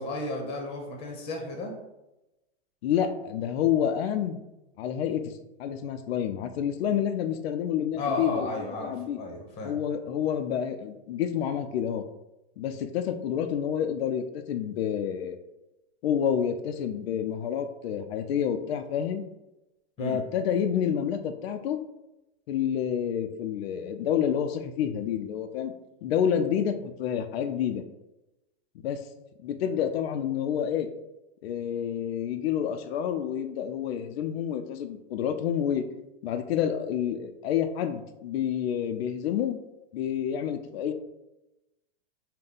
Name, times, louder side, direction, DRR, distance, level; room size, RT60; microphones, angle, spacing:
voice 1, 0.0-1.7 7.9-9.7 20.0-20.2, left 1 dB, 20° left, 1 dB, 0.9 m, -33 dB
voice 2, 2.8-4.4 4.8-5.3 5.6-9.2 9.6-12.0 12.6-15.4 16.0-19.2 20.0-21.8 22.5-25.7 26.0-27.8 28.8-29.0 29.4-30.9 31.4-35.9 36.2-39.6 39.9-40.9, left 9 dB, 70° left, 8 dB, 0.5 m, -28 dB
5.5 x 2.2 x 3.8 m, 0.94 s
supercardioid pair, 155°, 32 cm